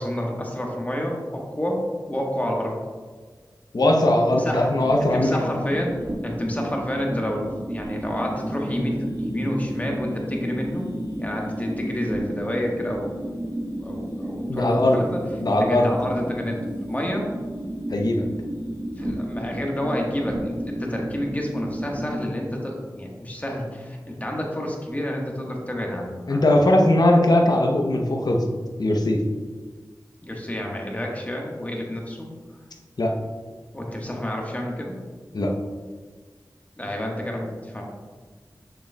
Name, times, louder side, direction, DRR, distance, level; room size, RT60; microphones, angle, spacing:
voice 1, 0.0-2.8 4.3-4.7 5.1-5.9 6.2-10.9 11.2-13.2 13.8-15.2 15.6-17.3 19.0-26.6 30.2-32.3 33.7-34.9 36.8-37.8, equal, 20° left, -1 dB, 1.3 m, -29 dB
voice 2, 3.7-5.4 14.5-15.0 15.4-15.9 17.9-18.2 26.3-28.5 28.8-29.2 33.0-33.1 35.3-35.5, left 1 dB, 60° left, 1 dB, 0.7 m, -19 dB
sound 1, 4.7-22.3, right 1 dB, 55° right, 1.2 m, -32 dB
6.7 x 6.3 x 2.2 m, 1.5 s
wide cardioid pair, 50°, 8 cm